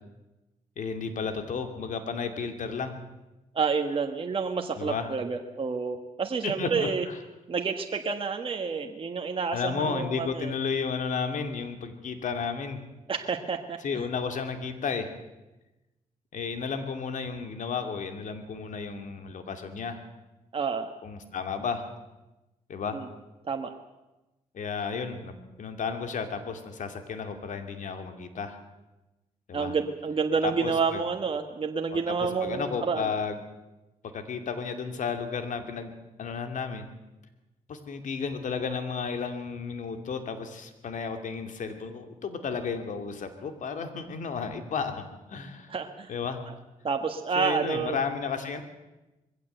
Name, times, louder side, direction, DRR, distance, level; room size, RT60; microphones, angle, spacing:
voice 1, 0.8-3.0 4.7-5.1 6.4-7.2 9.5-12.8 13.8-15.1 16.3-20.0 21.0-21.9 22.7-23.0 24.5-25.3 25.6-28.6 29.5-29.7 30.4-31.0 31.9-32.2 32.4-33.4 34.0-35.9 36.2-36.9 37.7-45.7 46.1-46.4 47.4-48.6, left 5 dB, 60° left, 7 dB, 2.6 m, -33 dB
voice 2, 3.5-7.0 7.5-10.5 13.1-14.0 20.5-20.9 22.9-23.1 23.4-23.7 29.5-33.1 45.7-46.1 46.5-46.6 46.8-48.0, right 5 dB, 40° right, 4 dB, 1.6 m, -29 dB
21.5 x 16.0 x 8.0 m, 1.0 s
cardioid pair, 75°, 14 cm